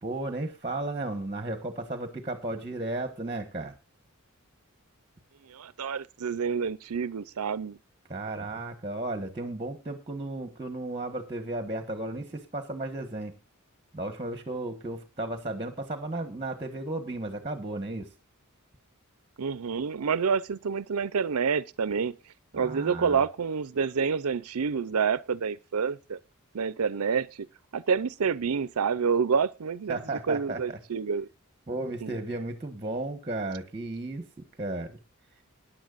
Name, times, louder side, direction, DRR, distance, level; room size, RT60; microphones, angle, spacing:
voice 1, 0.0-3.7 8.1-13.3 13.9-18.1 22.5-23.2 29.9-30.8 31.7-34.2 34.6-35.0, right 2 dB, 25° right, 1.4 m, -34 dB
voice 2, 5.5-7.8 19.4-22.2 22.5-26.2 26.5-27.3 27.7-30.0 30.3-31.3 32.0-32.1, right 6 dB, 85° right, 0.5 m, -28 dB
21.0 x 10.0 x 2.5 m
head